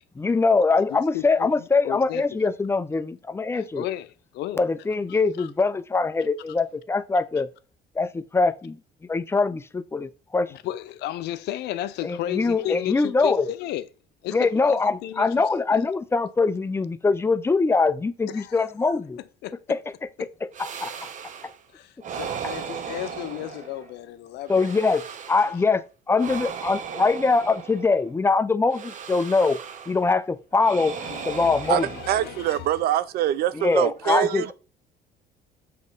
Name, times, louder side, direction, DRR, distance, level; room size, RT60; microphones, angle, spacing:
voice 1, 0.2-3.9 4.6-7.5 8.0-8.8 9.1-10.5 12.0-13.4 14.3-19.2 19.7-19.8 20.6-20.9 24.5-31.0 31.2-31.9 33.5-34.5, left 4 dB, 15° left, 0.5 m, -23 dB
voice 2, 0.9-2.2 3.5-4.6 5.4-5.5 10.5-13.9 14.2-15.3 15.7-15.8 18.3-18.7 19.4-19.6 20.2-20.3 21.7-24.7 25.4-25.6 31.0-32.7, left 13 dB, 80° left, 0.6 m, -34 dB
sound 1, 20.5-21.6 22.0-24.0 24.4-25.7 26.1-28.1 28.7-30.1 30.6-32.7, right 7 dB, 50° right, 0.9 m, -37 dB
voice 3, 31.7-34.5, right 12 dB, 70° right, 0.5 m, -24 dB
7.7 x 3.1 x 5.4 m
cardioid pair, 110°, 17 cm